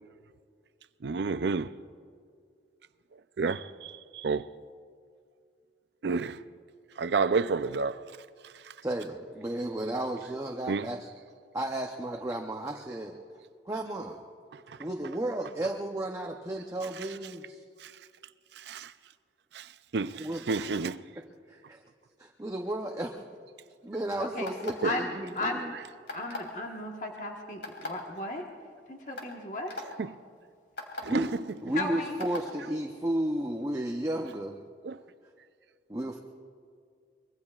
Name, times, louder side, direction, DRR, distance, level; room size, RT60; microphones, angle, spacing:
voice 1, 1.0-1.7 3.1-4.5 6.0-6.4 7.0-8.0 8.4-8.7 10.7-10.9 14.5-14.8 16.9-17.2 17.8-17.9 18.5-18.9 19.5-21.0 24.8-24.9 30.0-30.1 31.0-31.4 34.8-35.0, right 4 dB, 75° right, 0.5 m, -31 dB
voice 2, 8.8-11.1 11.5-13.2 13.7-14.2 14.8-17.6 20.2-20.7 21.5-21.8 22.2-23.2 23.8-25.7 31.1-31.4 31.6-34.6 35.9-36.2, right 1 dB, 20° right, 0.7 m, -33 dB
sound 1, 24.4-24.9 26.1-26.5 27.6-27.9 28.6-28.7 29.2-29.3 29.7-29.8 30.8-31.0 32.2-32.4, left 2 dB, 85° left, 3.1 m, -37 dB
voice 3, 24.8-25.6 26.1-28.5 28.9-29.8 31.7-32.2, left 2 dB, 45° left, 1.4 m, -35 dB
24.5 x 22.5 x 2.4 m
head